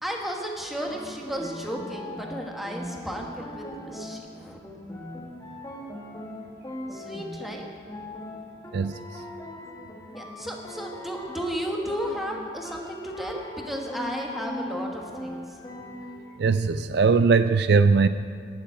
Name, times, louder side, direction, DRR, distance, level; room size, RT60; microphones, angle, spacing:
voice 1, 0.0-4.6 6.9-7.8 10.1-15.5, equal, ahead, 0 dB, 1.3 m, -34 dB
sound 1, 0.7-16.4, left 1 dB, 20° left, 1.6 m, -40 dB
voice 2, 8.7-9.2 16.4-18.1, right 4 dB, 60° right, 12 dB, 0.4 m, -20 dB
12.0 x 7.2 x 9.5 m, 2.2 s
head